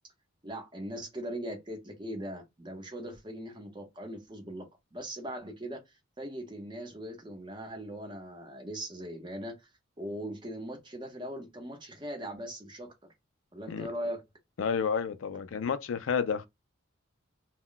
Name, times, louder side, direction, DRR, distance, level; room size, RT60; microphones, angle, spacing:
voice 1, 0.4-5.8 6.2-9.7 10.0-13.1 13.5-14.2, equal, 25° right, 0.7 m, -40 dB
voice 2, 14.6-16.5, left 6 dB, 80° left, 0.4 m, -30 dB
2.2 x 2.1 x 3.7 m
head